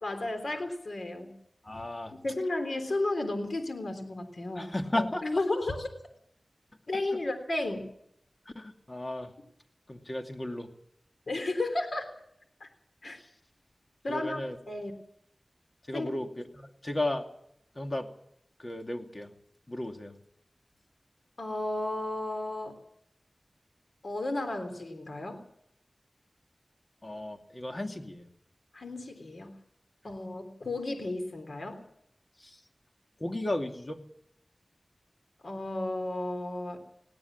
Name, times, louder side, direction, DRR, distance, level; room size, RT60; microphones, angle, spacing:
voice 1, 0.0-1.3 2.2-4.7 5.2-5.9 6.9-7.9 11.3-12.1 12.6-12.7 13.0-13.2 14.0-14.4 14.7-14.9 15.9-16.1 21.4-22.8 24.0-25.5 28.7-29.5 30.0-31.8 35.4-36.8, left 2 dB, 80° left, 7 dB, 3.5 m, -33 dB
voice 2, 1.6-2.1 4.6-5.2 6.9-7.2 8.5-9.3 9.9-10.7 13.0-13.3 14.1-14.6 15.9-17.3 17.7-18.1 18.6-19.3 19.7-20.2 27.0-28.3 32.4-32.6 33.2-34.0, left 1 dB, 40° left, 4 dB, 2.7 m, -34 dB
20.5 x 17.0 x 7.5 m, 0.73 s
wide cardioid pair, 50°, 0 cm